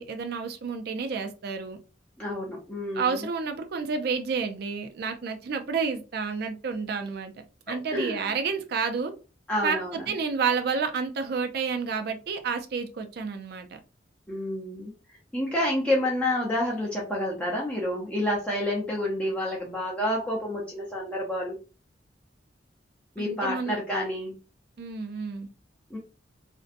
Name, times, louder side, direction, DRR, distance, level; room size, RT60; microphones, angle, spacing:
voice 1, 0.0-1.8 2.9-7.3 7.7-9.1 9.6-9.8 10.1-13.7 23.2-23.8 24.8-25.5, right 5 dB, 60° right, 0.4 m, -30 dB
voice 2, 2.2-3.3 7.7-8.3 9.5-10.1 14.3-21.6 23.2-24.3 25.9-26.0, left 1 dB, 5° left, 0.5 m, -29 dB
2.5 x 2.1 x 2.5 m
head